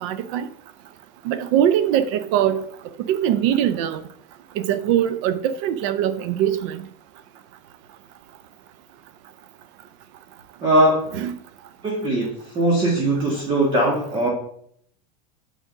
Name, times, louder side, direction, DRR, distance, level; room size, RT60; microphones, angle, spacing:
voice 1, 0.0-0.5 1.3-2.6 3.1-4.0 4.6-6.8 11.1-11.3, right 10 dB, 55° right, 0.5 m, -22 dB
voice 2, 10.6-11.0 11.8-12.3 12.5-14.3, right 1 dB, 25° right, 1.6 m, -20 dB
6.4 x 5.0 x 6.2 m
supercardioid pair, 160°, 19 cm